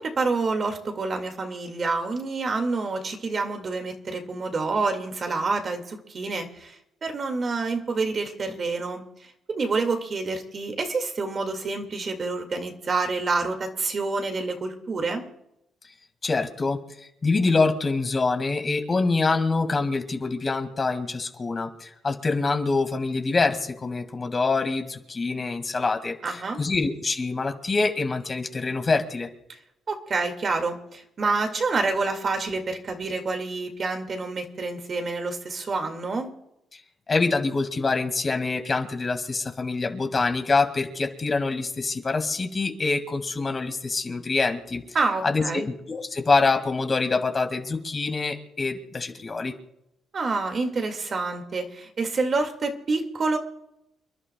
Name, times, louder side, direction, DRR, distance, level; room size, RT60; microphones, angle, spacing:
voice 1, 0.0-9.0 9.6-15.2 26.2-26.6 29.9-36.3 44.9-45.7 50.1-53.4, right 3 dB, 45° right, 4 dB, 2.1 m, -28 dB
voice 2, 16.2-29.3 36.7-36.8 37.1-44.8 45.2-49.5, left 3 dB, 35° left, 5 dB, 2.0 m, -25 dB
29.5 x 11.5 x 2.3 m, 0.82 s
cardioid pair, 90°, 0 cm